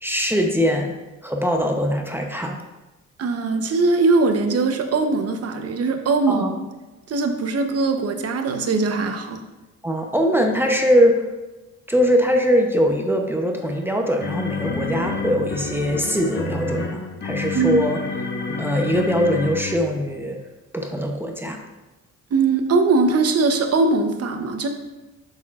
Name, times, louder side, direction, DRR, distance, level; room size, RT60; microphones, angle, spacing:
voice 1, 0.0-0.9 1.2-2.7 6.3-6.5 9.8-11.2 11.9-18.0 18.6-20.4 20.7-21.6, equal, 5° right, 2 dB, 0.8 m, -21 dB
voice 2, 3.2-6.5 7.1-9.4 17.5-17.8 22.3-24.7, right 3 dB, 55° right, 6 dB, 0.9 m, -20 dB
sound 1, 13.6-20.1, left 4 dB, 35° left, 1.0 m, -29 dB
8.0 x 6.8 x 2.5 m, 1.1 s
cardioid pair, 90°, 30 cm